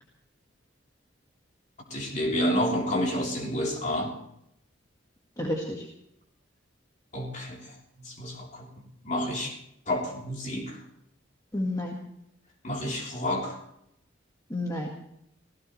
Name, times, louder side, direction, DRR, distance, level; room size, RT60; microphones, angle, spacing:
voice 1, 1.9-4.2 7.1-8.7 9.0-9.6 9.9-10.8 12.6-13.6, left 1 dB, 35° left, -1 dB, 3.5 m, -29 dB
voice 2, 5.4-5.9 11.5-12.0 14.5-14.9, left 1 dB, 15° left, -1 dB, 1.7 m, -30 dB
26.0 x 16.0 x 3.2 m, 0.78 s
head